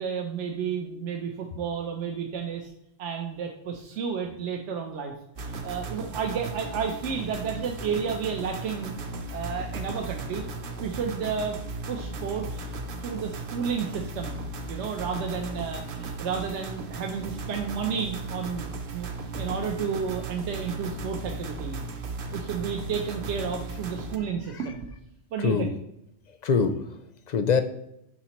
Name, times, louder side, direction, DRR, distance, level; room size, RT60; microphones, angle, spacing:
voice 1, 0.0-2.7 3.0-5.1 5.6-8.9 9.3-10.5 10.8-11.6 11.9-12.7 13.0-14.4 14.6-18.7 18.9-21.8 22.3-24.9 25.3-25.7, right 6 dB, 80° right, 2 dB, 1.0 m, -31 dB
sound 1, 5.4-24.2, right 3 dB, 55° right, 0.8 m, -36 dB
voice 2, 24.2-24.7 25.4-25.8 26.4-27.0 27.3-27.6, left 5 dB, 55° left, 8 dB, 0.5 m, -25 dB
11.0 x 4.0 x 3.0 m, 0.82 s
omnidirectional pair, 1.2 m